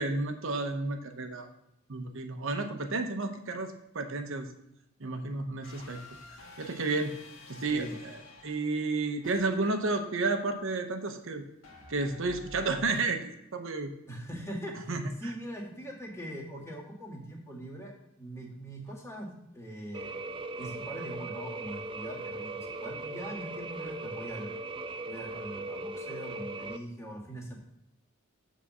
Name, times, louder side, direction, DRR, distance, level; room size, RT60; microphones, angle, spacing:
voice 1, 0.0-1.5 1.9-4.5 5.0-6.0 6.6-7.1 7.5-11.4 11.9-13.2 13.5-13.9 14.9-15.0, right 3 dB, 65° right, 6 dB, 0.9 m, -31 dB
sound 1, 5.6-10.8 11.6-13.1, left 2 dB, 70° left, 1.9 m, -51 dB
voice 2, 7.5-8.0 14.1-14.9 15.2-20.1 20.6-24.5 25.0-27.6, equal, 15° left, -3 dB, 1.8 m, -42 dB
sound 2, 19.9-26.8, right 2 dB, 25° right, 0.3 m, -39 dB
8.4 x 4.1 x 6.1 m, 0.80 s
head